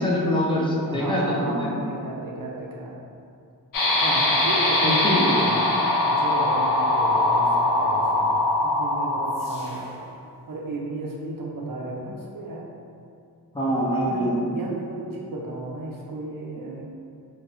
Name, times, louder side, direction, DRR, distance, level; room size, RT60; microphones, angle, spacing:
voice 1, 0.0-1.7 4.8-5.3 13.5-14.4, equal, 15° left, -6 dB, 0.6 m, -24 dB
voice 2, 0.9-3.0 4.0-5.6 6.1-8.3 8.6-9.9 10.5-12.7 14.0-16.9, right 2 dB, 60° right, -3 dB, 0.6 m, -33 dB
sound 1, 3.7-9.9, left 2 dB, 60° left, 0.5 m, -22 dB
3.0 x 2.4 x 2.7 m, 2.4 s
wide cardioid pair, 75°, 39 cm